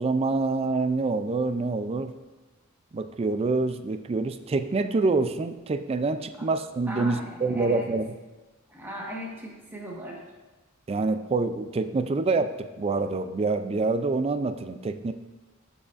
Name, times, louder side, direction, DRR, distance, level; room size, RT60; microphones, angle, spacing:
voice 1, 0.0-2.1 2.9-8.1 10.9-15.1, right 3 dB, 30° right, 10 dB, 0.3 m, -26 dB
voice 2, 6.9-7.9 8.7-10.2, equal, 10° right, -3 dB, 1.3 m, -37 dB
13.5 x 4.8 x 2.5 m, 1.2 s
head